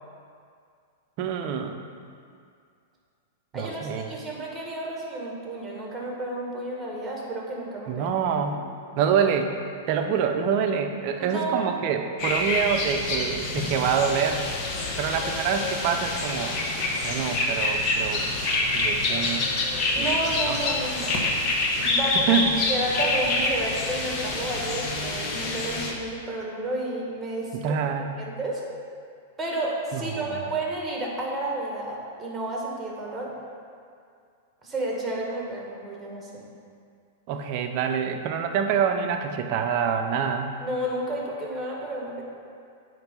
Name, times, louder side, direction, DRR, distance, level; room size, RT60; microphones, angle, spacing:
voice 1, 1.2-1.8 3.5-4.1 7.9-8.7 9.0-9.5 9.9-14.4 15.0-16.6 17.0-18.3 18.7-19.5 20.0-20.1 20.5-20.6 22.3-22.6 27.5-28.2 29.9-30.6 37.3-40.5, right 7 dB, 50° right, 5 dB, 0.6 m, -26 dB
voice 2, 3.5-8.1 8.5-8.6 11.2-11.7 19.9-21.3 21.8-22.3 22.7-27.8 28.2-28.6 29.4-33.3 34.6-36.5 40.6-42.2, right 1 dB, 10° right, -2 dB, 1.7 m, -31 dB
sound 1, 12.2-25.9, left 2 dB, 40° left, 1.1 m, -27 dB
8.8 x 3.2 x 5.3 m, 2.3 s
hypercardioid pair, 100°, 0 cm